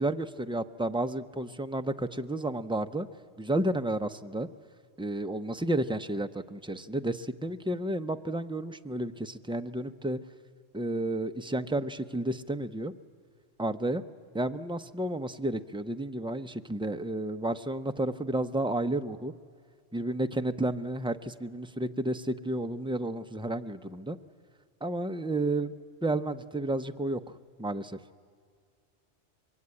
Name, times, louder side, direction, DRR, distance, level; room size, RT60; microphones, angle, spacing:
voice 1, 0.0-3.1 3.4-4.5 5.0-10.2 10.7-12.9 13.6-14.0 14.3-19.3 19.9-24.2 24.8-25.7 26.0-27.3 27.6-28.0, right 1 dB, 5° right, 8 dB, 0.4 m, -31 dB
24.5 x 22.5 x 9.7 m, 2.1 s
omnidirectional pair, 1.2 m